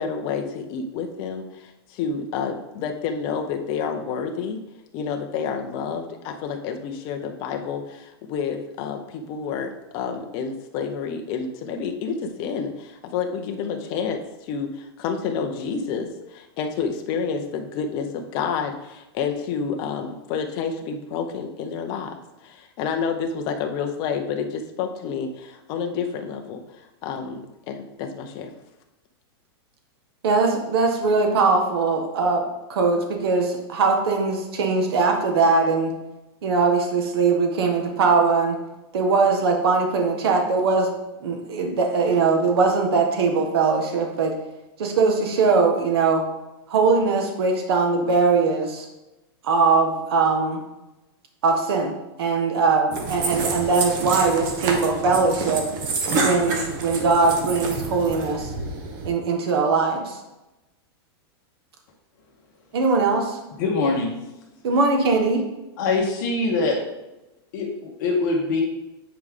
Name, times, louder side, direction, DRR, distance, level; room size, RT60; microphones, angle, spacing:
voice 1, 0.0-4.6 4.9-14.2 14.4-28.5, left 6 dB, 30° left, 4 dB, 0.7 m, -29 dB
voice 2, 30.2-32.4 32.7-35.9 36.4-38.6 38.9-40.9 41.2-44.3 44.8-46.2 46.7-48.9 49.4-50.6 51.4-55.6 56.2-58.5 59.0-60.2 62.7-63.4 64.6-65.4, right 4 dB, 70° right, 3 dB, 1.5 m, -21 dB
sound 1, 52.9-59.1, right 3 dB, 45° right, 1.1 m, -28 dB
voice 3, 63.6-64.1 65.8-66.8 67.5-68.6, left 3 dB, 50° left, -3 dB, 1.4 m, -23 dB
8.6 x 4.8 x 3.7 m, 0.99 s
supercardioid pair, 165°, 14 cm